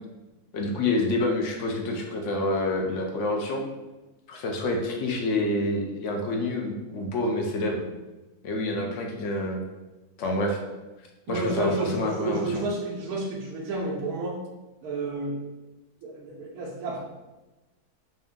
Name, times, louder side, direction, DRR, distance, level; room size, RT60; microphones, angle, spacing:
voice 1, 0.5-3.6 4.3-7.8 8.4-9.6 10.2-10.6 11.3-12.6, left 2 dB, 65° left, 1 dB, 0.8 m, -27 dB
voice 2, 11.3-14.4 14.8-15.4 16.0-17.0, right 2 dB, 75° right, -3 dB, 1.1 m, -30 dB
3.3 x 2.7 x 3.6 m, 1.1 s
omnidirectional pair, 1.6 m